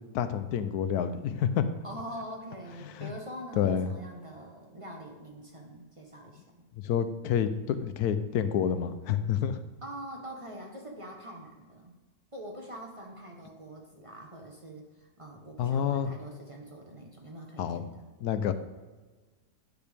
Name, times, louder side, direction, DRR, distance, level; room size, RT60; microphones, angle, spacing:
voice 1, 0.1-1.6 2.8-3.1 3.6-3.9 6.8-9.6 15.6-16.1 17.6-17.8 18.2-18.5, left 8 dB, 85° left, 11 dB, 1.1 m, -28 dB
voice 2, 1.8-6.4 9.8-11.9 12.3-18.1, right 1 dB, 25° right, 0 dB, 0.9 m, -44 dB
10.0 x 6.7 x 3.4 m, 1.3 s
omnidirectional pair, 1.6 m